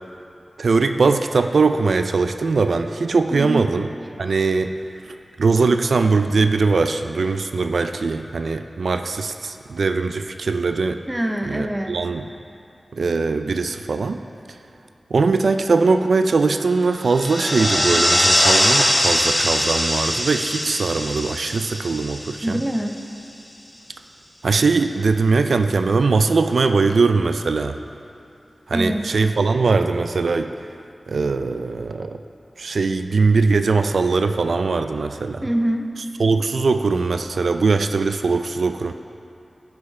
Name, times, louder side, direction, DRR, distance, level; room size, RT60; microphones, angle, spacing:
voice 1, 0.6-3.9 4.2-4.7 5.4-11.0 11.4-12.2 12.9-14.2 15.1-22.6 24.4-27.8 28.7-30.5 31.1-32.2 32.6-35.4 36.2-38.9, right 4 dB, 85° right, 8 dB, 0.3 m, -20 dB
voice 2, 3.3-3.7 11.1-12.0 22.4-23.0 28.7-29.1 35.4-35.9, right 1 dB, 10° right, 4 dB, 0.7 m, -24 dB
sound 1, 17.0-22.9, equal, 10° left, 2.1 m, -21 dB
17.0 x 5.9 x 3.3 m, 2.5 s
wide cardioid pair, 80°, 0 cm